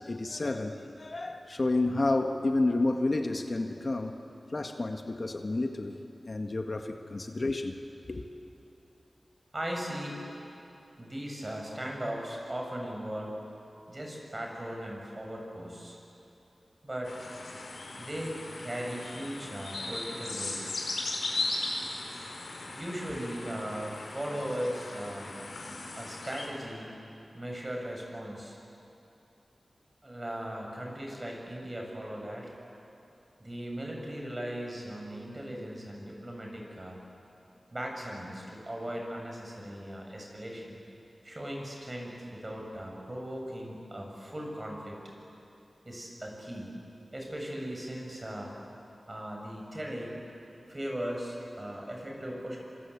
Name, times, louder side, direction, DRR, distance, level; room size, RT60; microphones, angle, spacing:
voice 1, 0.0-4.2 4.5-6.0 6.2-7.8 8.0-8.2, left 2 dB, 45° left, 4 dB, 1.6 m, -30 dB
voice 2, 9.5-10.2 11.0-13.4 13.9-16.0 16.8-17.2 18.0-20.7 22.7-25.3 26.0-26.9 27.3-28.6 30.0-32.5 33.4-37.0 37.7-40.8 41.2-45.0 45.8-46.7 47.1-48.6 49.1-50.2 50.7-52.6, equal, 30° right, 0 dB, 7.2 m, -38 dB
sound 1, 17.0-26.5, left 2 dB, 85° left, 4.5 m, -38 dB
26.0 x 26.0 x 8.6 m, 2.8 s
wide cardioid pair, 65°, 0 cm